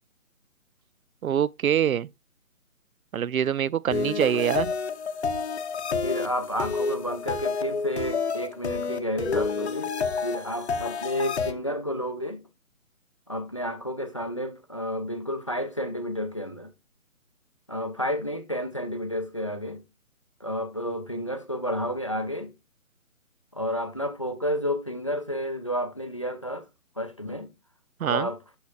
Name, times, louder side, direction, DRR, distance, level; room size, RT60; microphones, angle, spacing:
voice 1, 1.2-2.1 3.1-4.7 28.0-28.3, right 9 dB, 80° right, 0.5 m, -24 dB
sound 1, 3.9-11.5, left 5 dB, 50° left, 0.8 m, -29 dB
voice 2, 6.0-9.9 10.2-12.5 13.3-16.7 17.7-19.8 20.4-22.5 23.5-26.7 27.0-27.5 28.1-28.4, equal, 25° left, 0.5 m, -31 dB
10.5 x 5.8 x 2.4 m
figure-of-eight pair, 145°, 42 cm